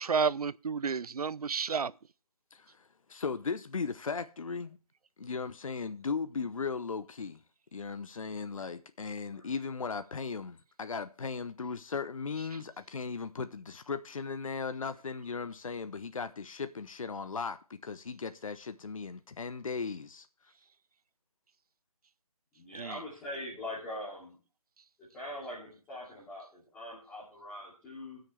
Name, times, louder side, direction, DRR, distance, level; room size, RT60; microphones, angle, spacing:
voice 1, 0.0-1.9 22.7-23.0, right 5 dB, 90° right, 0.4 m, -31 dB
voice 2, 2.5-4.8 5.2-7.4 7.7-20.3, left 5 dB, 65° left, 0.7 m, -37 dB
voice 3, 22.5-24.4 25.1-28.2, left 1 dB, 5° left, 2.6 m, -42 dB
18.0 x 6.5 x 3.2 m
figure-of-eight pair, 155°, 19 cm